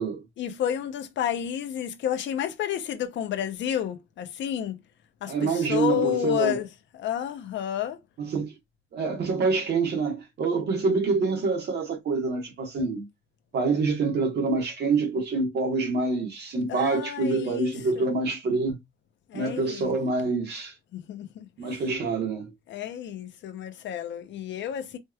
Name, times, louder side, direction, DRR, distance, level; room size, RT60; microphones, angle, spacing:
voice 1, 0.4-4.8 5.2-6.7 6.9-8.0 16.7-18.1 19.3-19.9 20.9-21.5 22.7-25.0, left 10 dB, 65° left, 0.8 m, -30 dB
voice 2, 5.3-6.6 8.2-8.5 8.9-13.1 13.5-18.8 19.3-20.7 21.6-22.5, right 4 dB, 55° right, 1.3 m, -26 dB
4.5 x 3.0 x 2.3 m
cardioid pair, 160°, 21 cm